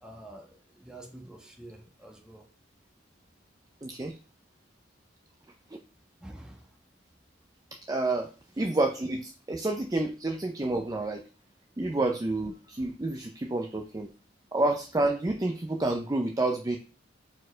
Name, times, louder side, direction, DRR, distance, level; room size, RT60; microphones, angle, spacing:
voice 1, 0.0-2.5 6.2-6.8 8.6-8.7, right 1 dB, 5° right, 1.1 m, -48 dB
voice 2, 3.8-4.2 5.7-5.8 7.9-8.3 8.6-11.2 11.8-14.1 14.5-16.8, right 2 dB, 20° right, 0.5 m, -29 dB
4.6 x 4.3 x 4.9 m
head